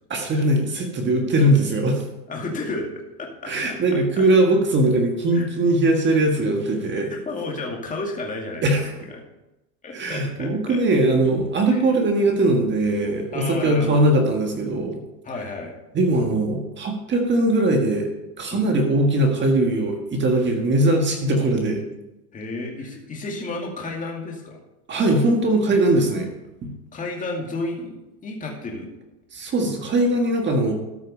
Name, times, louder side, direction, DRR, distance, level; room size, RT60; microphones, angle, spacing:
voice 1, 0.1-2.0 3.5-7.1 8.6-8.9 9.9-15.0 15.9-18.1 18.4-21.8 24.9-26.3 26.6-26.7 29.3-30.7, right 1 dB, 25° right, 3 dB, 1.6 m, -20 dB
voice 2, 2.3-2.9 3.2-3.8 4.2-4.3 5.3-5.5 6.9-9.2 9.8-10.8 11.7-11.9 13.3-14.1 15.2-15.7 18.5-18.7 22.3-24.6 26.9-28.9, left 2 dB, 15° left, 0 dB, 2.3 m, -32 dB
13.5 x 6.4 x 5.3 m, 0.95 s
supercardioid pair, 125°, 47 cm